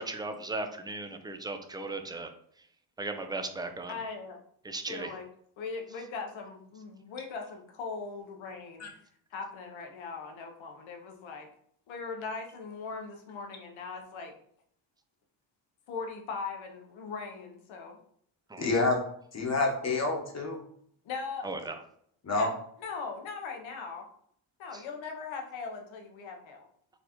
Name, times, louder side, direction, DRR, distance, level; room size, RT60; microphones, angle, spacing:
voice 1, 0.0-2.3 3.0-3.9 4.6-5.1 18.5-18.7 21.4-21.7, right 2 dB, 10° right, 6 dB, 0.4 m, -36 dB
voice 2, 3.9-4.4 4.8-5.3 5.6-8.9 9.3-11.5 11.9-14.3 15.9-18.0 21.0-21.5 22.4-24.0 24.6-26.7, left 4 dB, 80° left, 3 dB, 0.9 m, -39 dB
voice 3, 18.6-19.0 19.3-20.6 22.2-22.5, left 3 dB, 35° left, 1 dB, 1.1 m, -27 dB
4.3 x 2.4 x 2.9 m, 0.65 s
cardioid pair, 75°, 46 cm